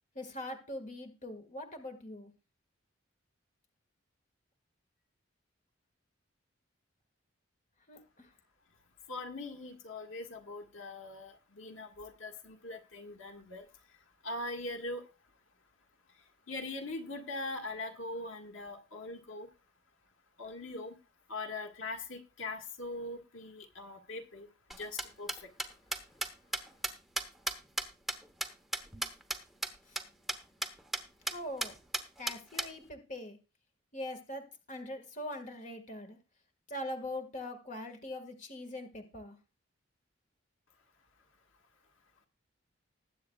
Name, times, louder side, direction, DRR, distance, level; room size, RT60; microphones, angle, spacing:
voice 1, 0.2-2.3 7.9-8.3 29.9-30.0 31.3-31.7 32.2-33.4 33.9-36.2 36.7-39.4, left 1 dB, 40° left, 5 dB, 1.9 m, -42 dB
voice 2, 9.1-13.7 14.2-15.0 16.5-19.5 20.4-21.0 21.3-25.5, left 2 dB, 85° left, 4 dB, 1.8 m, -41 dB
sound 1, 24.7-29.4 29.6-29.7 30.0-30.1 30.3-30.4 30.6-31.0 31.3-31.4 31.6-32.7, right 1 dB, ahead, 1.0 m, -34 dB
20.5 x 8.3 x 2.4 m, 0.30 s
head